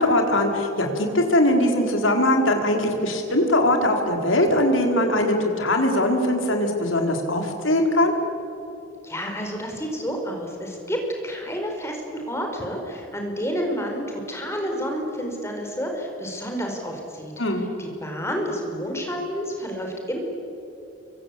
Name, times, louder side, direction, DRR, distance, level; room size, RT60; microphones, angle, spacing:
voice 1, 0.0-8.1 17.4-17.7, left 1 dB, 80° left, 3 dB, 4.5 m, -21 dB
voice 2, 9.0-17.3 17.8-20.2, equal, 15° left, 2 dB, 4.8 m, -30 dB
29.0 x 24.0 x 8.5 m, 2.9 s
head